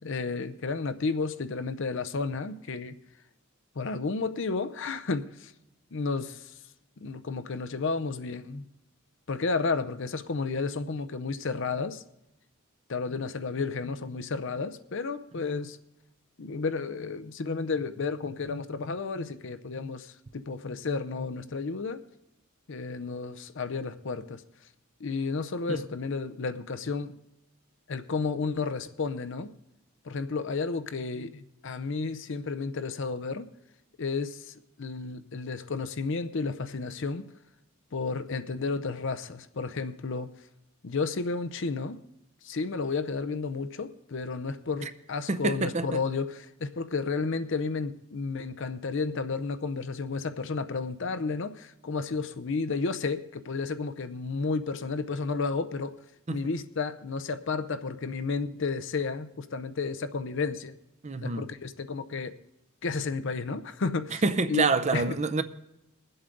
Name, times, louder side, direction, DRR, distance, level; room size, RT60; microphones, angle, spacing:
voice 1, 0.0-3.0 3.8-5.5 5.9-6.5 7.0-8.7 9.3-12.0 12.9-15.8 16.4-22.0 22.7-24.4 25.0-27.1 27.9-29.5 30.0-33.5 34.0-34.5 34.8-37.3 37.9-40.3 40.8-42.0 42.4-55.9 56.3-60.7 61.2-62.3 62.8-64.2 64.5-65.0, left 4 dB, 60° left, 0.6 m, -32 dB
voice 2, 45.3-46.0 56.3-56.5 61.0-61.4 64.2-65.4, right 3 dB, 35° right, 0.6 m, -27 dB
21.0 x 7.9 x 3.9 m
head